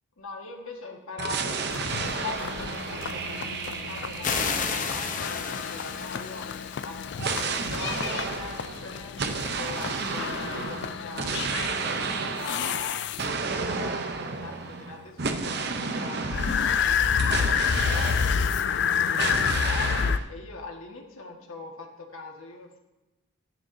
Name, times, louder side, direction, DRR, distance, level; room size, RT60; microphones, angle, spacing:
voice 1, 0.2-9.3 9.5-22.8, left 3 dB, 85° left, 2 dB, 1.6 m, -42 dB
sound 1, 1.2-5.9 7.2-18.8 19.2-20.3, right 4 dB, 50° right, 0.7 m, -32 dB
sound 2, 1.7-13.6 16.3-20.2, left 7 dB, 55° left, 0.3 m, -29 dB
sound 3, 4.2-7.5, left 5 dB, 40° left, 0.8 m, -32 dB
12.0 x 9.9 x 2.7 m, 1.0 s
head